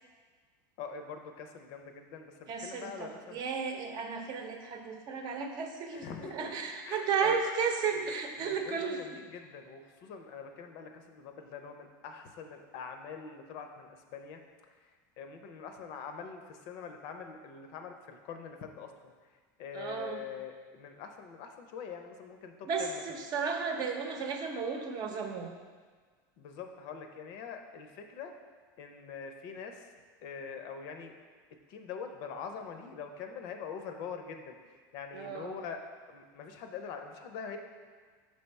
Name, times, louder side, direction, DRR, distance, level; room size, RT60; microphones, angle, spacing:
voice 1, 0.8-3.4 5.9-6.5 6.8-7.4 7.9-8.0 8.4-14.4 14.8-18.9 19.6-23.0 26.4-28.3 28.8-29.9 30.2-31.1 31.7-37.6, left 6 dB, 60° left, 5 dB, 0.7 m, -44 dB
voice 2, 2.5-9.0 19.7-20.2 22.7-25.5 35.1-35.6, right 5 dB, 45° right, 3 dB, 0.8 m, -34 dB
6.5 x 3.4 x 5.4 m, 1.5 s
supercardioid pair, 135°, 10 cm